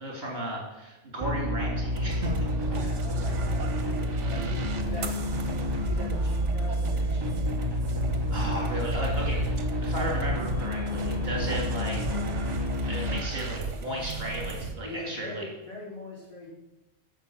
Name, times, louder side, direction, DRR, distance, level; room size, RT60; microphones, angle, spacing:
voice 1, 0.0-2.3 2.6-2.7 8.3-12.0 12.9-15.4, equal, 50° right, -2 dB, 3.6 m, -34 dB
sound 1, 1.2-13.2, left 1 dB, 20° right, 1.0 m, -29 dB
sound 2, 1.9-14.7, right 4 dB, 75° right, 1.5 m, -36 dB
voice 2, 2.7-5.2 5.4-7.8 14.8-16.5, left 1 dB, 25° left, -7 dB, 4.9 m, -42 dB
11.5 x 7.3 x 7.2 m, 1.0 s
omnidirectional pair, 1.2 m